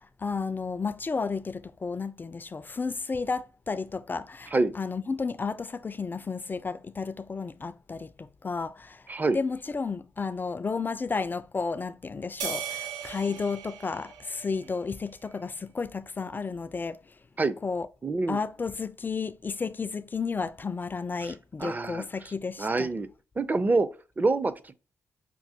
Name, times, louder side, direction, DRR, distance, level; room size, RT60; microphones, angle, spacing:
voice 1, 0.2-9.0 9.3-17.0 17.6-17.9 18.3-22.9, left 4 dB, 30° left, 0.3 m, -32 dB
sound 1, 12.4-15.0, right 7 dB, 90° right, 0.6 m, -38 dB
voice 2, 18.0-18.4 21.2-21.3 21.6-22.1 22.6-23.1 23.4-23.9 24.2-24.7, right 3 dB, 25° right, 0.5 m, -26 dB
5.9 x 2.0 x 2.8 m
supercardioid pair, 55°, 6 cm